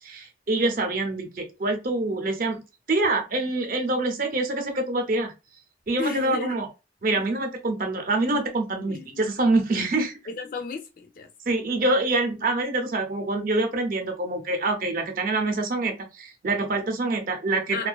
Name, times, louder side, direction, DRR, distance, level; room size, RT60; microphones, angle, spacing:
voice 1, 0.0-2.6 2.9-5.3 5.9-6.7 7.0-10.2 11.5-17.9, right 2 dB, 45° right, 0.6 m, -25 dB
voice 2, 6.0-6.5 8.9-9.1 10.3-11.3 17.7-17.9, left 5 dB, 45° left, 0.4 m, -33 dB
2.4 x 2.3 x 2.3 m
head